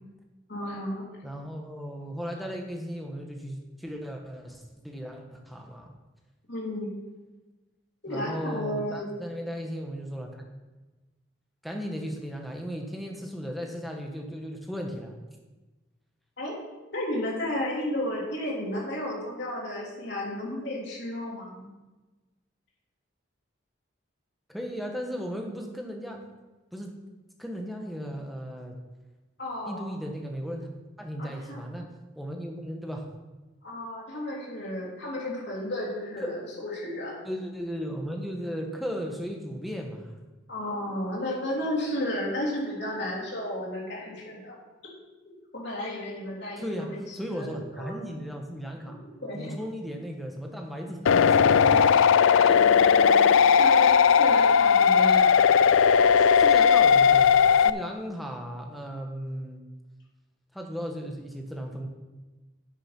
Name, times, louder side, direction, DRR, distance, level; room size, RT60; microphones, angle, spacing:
voice 1, 0.5-1.0 6.5-6.9 8.0-9.0 16.4-16.6 16.9-21.7 29.4-29.9 31.2-31.6 33.6-37.1 40.5-44.5 45.5-47.4 47.7-47.9 49.2-49.5 51.6-52.0 52.3-53.2 53.6-55.4 56.2-56.3, left 1 dB, 55° left, -4 dB, 3.4 m, -33 dB
voice 2, 1.2-5.9 8.1-10.4 11.6-15.1 24.5-26.3 26.7-26.9 27.4-28.8 29.6-31.9 32.2-33.0 36.2-36.3 37.2-40.1 46.6-49.0 49.3-51.7 56.4-57.4 57.6-59.6 60.5-61.9, equal, ahead, 1 dB, 1.2 m, -36 dB
sound 1, 51.1-57.7, left 7 dB, 75° left, 0.3 m, -18 dB
10.0 x 6.6 x 6.0 m, 1.2 s
head